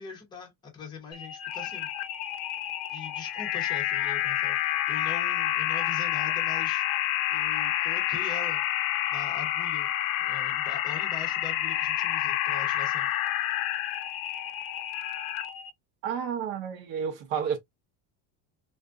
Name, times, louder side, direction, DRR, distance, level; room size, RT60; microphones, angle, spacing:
voice 1, 0.0-1.9 2.9-6.9 7.3-8.6 9.1-9.9 10.2-13.1, left 5 dB, 10° left, 0.7 m, -42 dB
sound 1, 1.1-15.7, left 13 dB, 85° left, 0.5 m, -29 dB
voice 2, 16.0-17.6, right 7 dB, 70° right, 1.0 m, -31 dB
2.6 x 2.4 x 2.3 m
cardioid pair, 175°, 44 cm